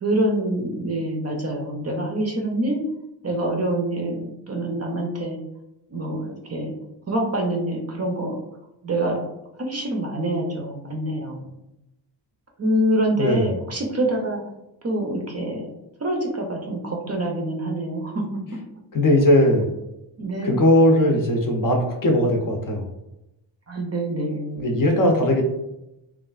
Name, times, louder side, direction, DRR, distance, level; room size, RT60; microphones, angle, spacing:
voice 1, 0.0-2.8 3.2-5.4 5.9-6.7 7.1-8.4 8.8-9.2 9.6-11.5 12.6-14.4 14.8-15.7 16.0-18.2 20.2-20.6 23.7-24.8, right 1 dB, 35° right, 1 dB, 0.5 m, -26 dB
voice 2, 13.2-13.5 18.9-19.7 20.4-22.9 24.6-25.4, left 1 dB, 45° left, 1 dB, 0.6 m, -19 dB
3.1 x 2.4 x 2.3 m, 0.90 s
wide cardioid pair, 105°, 47 cm